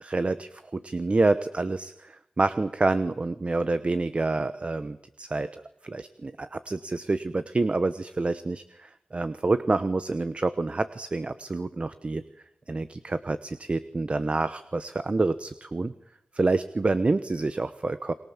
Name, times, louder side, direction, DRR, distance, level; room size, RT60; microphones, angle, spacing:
voice 1, 0.0-12.2 12.7-15.9 16.3-18.1, right 3 dB, 40° right, 13 dB, 1.0 m, -27 dB
28.0 x 22.5 x 7.4 m, 0.81 s
cardioid pair, 60°, 3 cm